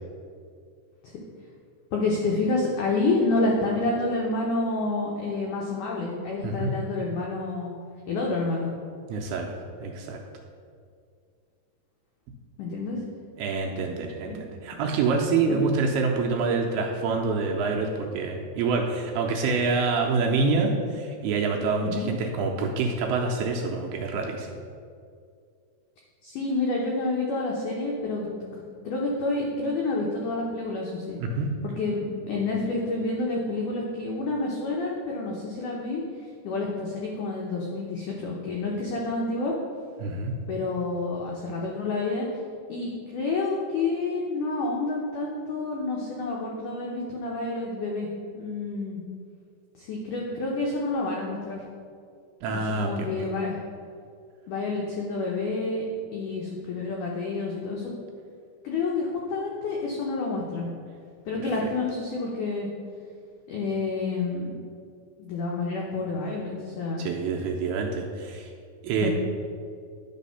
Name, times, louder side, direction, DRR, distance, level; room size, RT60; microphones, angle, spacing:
voice 1, 1.9-7.7 8.1-8.7 12.6-13.0 14.3-14.4 15.5-15.6 21.8-22.1 26.2-31.2 31.6-39.5 40.5-42.3 42.7-48.1 48.3-49.0 49.8-51.6 52.5-53.6 54.5-57.9 58.6-60.7 61.3-62.7 63.5-64.6 65.2-67.1 69.0-69.1, left 3 dB, 90° left, -2 dB, 1.7 m, -29 dB
voice 2, 9.1-9.5 9.8-10.2 13.4-24.5 31.2-31.5 40.0-40.3 52.4-53.1 67.0-68.5 68.8-69.1, right 4 dB, 80° right, 1 dB, 2.4 m, -26 dB
10.5 x 4.2 x 5.5 m, 2.3 s
omnidirectional pair, 4.9 m